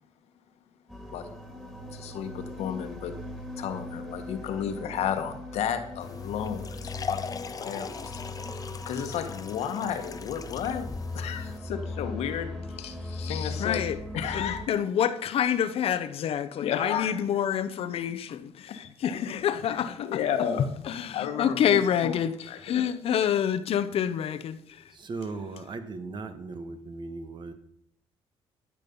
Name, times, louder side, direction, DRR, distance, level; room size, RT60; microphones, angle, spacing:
sound 1, 0.9-14.7, left 2 dB, 5° right, 2.9 m, -39 dB
voice 1, 1.9-3.1 3.6-8.2 8.8-10.9 11.1-13.8 14.1-14.7 16.6-17.1 18.7-19.2 19.7-20.6 21.1-22.2 22.5-22.9, left 8 dB, 80° left, 1.5 m, -33 dB
sound 2, 6.0-11.6, left 6 dB, 35° left, 0.7 m, -40 dB
voice 2, 13.6-14.0 14.3-20.2 20.9-22.4 22.6-24.8, left 9 dB, 65° left, 0.9 m, -27 dB
voice 3, 24.9-27.5, right 3 dB, 45° right, 1.6 m, -37 dB
13.5 x 7.4 x 5.5 m
cardioid pair, 95°, 11 cm